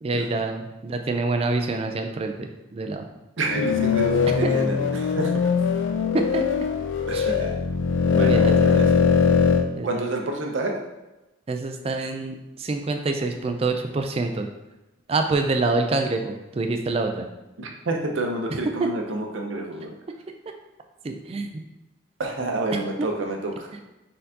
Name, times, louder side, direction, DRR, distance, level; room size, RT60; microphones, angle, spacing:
voice 1, 0.0-3.1 4.3-4.5 6.1-6.4 7.1-7.3 8.2-8.7 9.7-10.1 11.5-14.5 15.1-17.3 18.5-18.9 21.0-21.5 22.7-23.1 23.7-23.8, right 3 dB, 30° right, 5 dB, 0.3 m, -26 dB
sound 1, 3.4-9.6, left 6 dB, 70° left, 0.4 m, -21 dB
voice 2, 3.4-5.4 7.1-7.5 8.1-8.8 9.8-10.8 17.6-19.9 22.2-23.7, right 2 dB, 75° right, 2 dB, 0.6 m, -28 dB
4.3 x 3.8 x 2.7 m, 0.99 s
head